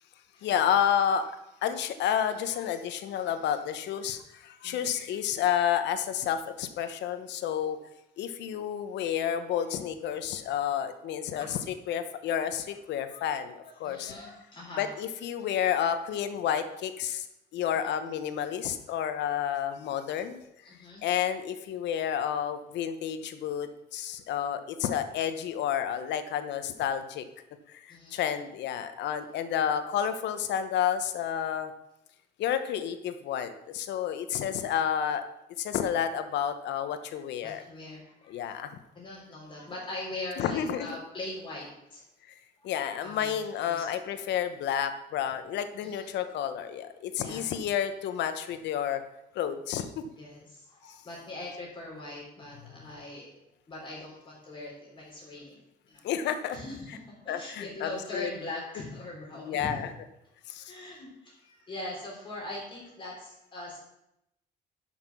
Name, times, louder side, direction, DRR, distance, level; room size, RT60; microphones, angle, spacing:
voice 1, 0.4-1.3 1.6-7.8 8.2-11.5 11.9-14.1 14.8-17.2 17.5-20.4 21.0-27.2 27.7-31.7 32.4-35.2 35.6-37.6 38.3-38.7 40.4-40.9 42.6-49.0 49.3-49.9 56.0-56.6 57.3-58.3 59.4-59.9 60.5-60.7, left 9 dB, 85° left, 9 dB, 1.1 m, -30 dB
voice 2, 4.6-5.0 13.1-13.3 13.6-14.9 17.8-17.9 20.6-21.0 27.9-28.3 37.1-38.5 38.9-42.0 42.6-43.9 45.8-46.1 47.2-47.5 50.2-53.3 53.7-56.1 56.5-59.8 60.6-63.8, left 2 dB, 30° left, -5 dB, 3.6 m, -42 dB
11.0 x 5.9 x 6.2 m, 0.85 s
cardioid pair, 165°, 18 cm